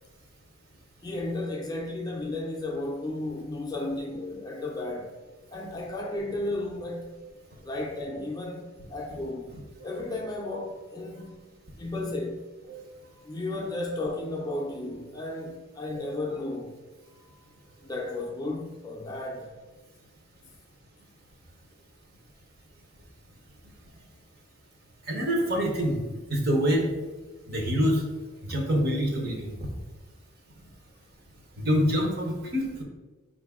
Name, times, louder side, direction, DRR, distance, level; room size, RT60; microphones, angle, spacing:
voice 1, 1.0-5.1 5.5-7.2 7.6-9.6 9.8-11.4 11.8-12.4 13.3-16.8 17.8-19.5, left 2 dB, 20° left, 0.4 m, -33 dB
voice 2, 25.1-26.0 26.3-26.9 27.5-28.0 28.4-29.5 31.6-32.8, equal, 50° right, 0.8 m, -26 dB
5.0 x 2.6 x 3.5 m
head